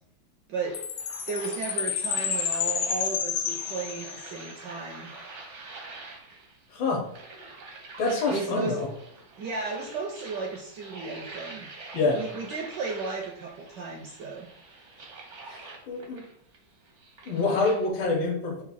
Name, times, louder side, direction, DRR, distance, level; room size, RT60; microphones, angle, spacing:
sound 1, 0.6-17.9, right 3 dB, 55° right, 0.8 m, -46 dB
Chime, 0.7-4.5, left 7 dB, 85° left, 1.5 m, -30 dB
voice 1, 1.3-5.1 8.3-8.8 9.4-11.7 12.1-14.5, right 4 dB, 70° right, 0 dB, 1.1 m, -34 dB
voice 2, 6.7-7.0 8.0-8.9 11.9-12.2 15.6-16.2 17.3-18.6, left 3 dB, 65° left, 0 dB, 1.7 m, -26 dB
4.1 x 2.6 x 4.0 m, 0.68 s
omnidirectional pair, 2.4 m